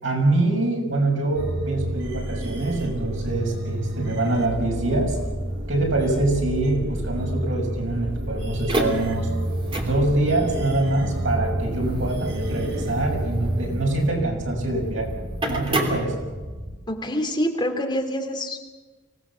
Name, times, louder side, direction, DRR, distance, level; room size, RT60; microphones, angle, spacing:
voice 1, 0.0-5.2 5.7-9.3 9.7-15.1 15.5-16.1, right 2 dB, 85° right, 0 dB, 6.8 m, -24 dB
sound 1, 1.3-13.9, right 1 dB, 60° right, 3.2 m, -30 dB
sound 2, 8.5-16.7, right 1 dB, 25° right, 3.0 m, -30 dB
voice 2, 16.9-18.6, equal, 25° left, 3 dB, 2.7 m, -26 dB
24.5 x 18.0 x 7.4 m, 1.3 s
head